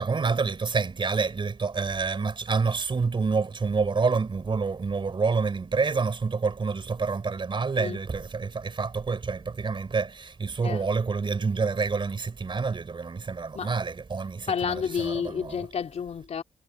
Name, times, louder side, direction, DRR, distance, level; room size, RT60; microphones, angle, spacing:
voice 1, 0.0-15.7, right 4 dB, 40° right, 4.3 m, -28 dB
voice 2, 14.5-16.4, left 7 dB, 60° left, 3.0 m, -30 dB
cardioid pair, 80°, 12 cm